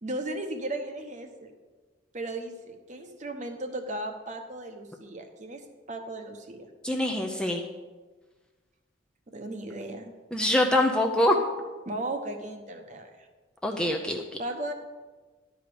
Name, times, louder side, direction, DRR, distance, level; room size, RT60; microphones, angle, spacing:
voice 1, 0.0-1.5 2.1-6.7 9.3-10.1 11.8-13.3 14.4-14.7, right 1 dB, 35° right, 5 dB, 0.9 m, -36 dB
voice 2, 6.8-7.6 10.3-11.4 13.6-14.2, left 1 dB, 5° left, 2 dB, 0.6 m, -24 dB
11.5 x 5.0 x 7.0 m, 1.3 s
head